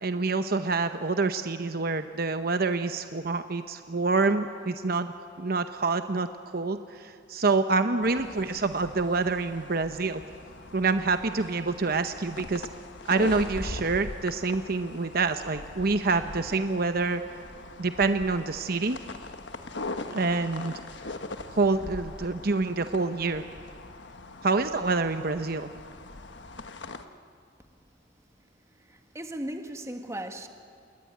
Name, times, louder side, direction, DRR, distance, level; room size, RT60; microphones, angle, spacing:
voice 1, 0.0-10.2 10.7-12.7 13.1-17.2 17.8-19.0 20.1-20.7 21.5-23.4 24.4-25.7, right 3 dB, 55° right, 0.9 m, -27 dB
sound 1, 8.0-27.1, left 2 dB, 70° left, 1.4 m, -41 dB
voice 2, 28.8-30.5, right 1 dB, 15° right, 1.8 m, -37 dB
28.5 x 21.5 x 9.5 m
head